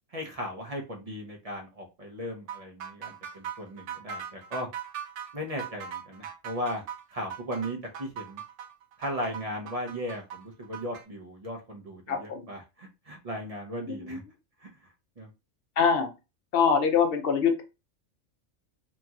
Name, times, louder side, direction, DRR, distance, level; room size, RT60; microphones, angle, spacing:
voice 1, 0.1-4.7 5.3-6.8 7.1-8.4 9.0-14.2 14.6-14.7 15.2-15.3, equal, 45° right, 2 dB, 0.5 m, -37 dB
sound 1, 2.5-11.0, right 8 dB, 70° right, 0.9 m, -40 dB
voice 2, 12.1-12.5 13.9-14.2 15.8-16.1 16.5-17.6, left 6 dB, 60° left, 5 dB, 0.7 m, -24 dB
2.9 x 2.7 x 2.3 m, 0.27 s
omnidirectional pair, 1.3 m